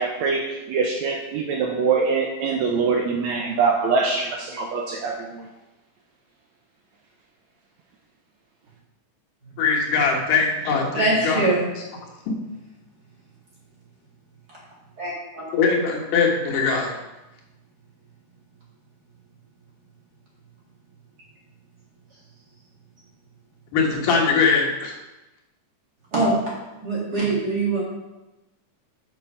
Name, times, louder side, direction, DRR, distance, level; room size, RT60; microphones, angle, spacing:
voice 1, 0.0-5.5, right 4 dB, 75° right, 1 dB, 1.7 m, -24 dB
voice 2, 9.6-11.4 12.3-12.4 15.5-16.9 23.7-25.0, left 5 dB, 80° left, -1 dB, 3.0 m, -21 dB
voice 3, 10.9-11.7 14.5-14.6 15.0-15.4 26.1-26.5 26.8-27.8, right 2 dB, 35° right, -5 dB, 2.0 m, -23 dB
6.9 x 5.7 x 5.4 m, 1.0 s
omnidirectional pair, 3.7 m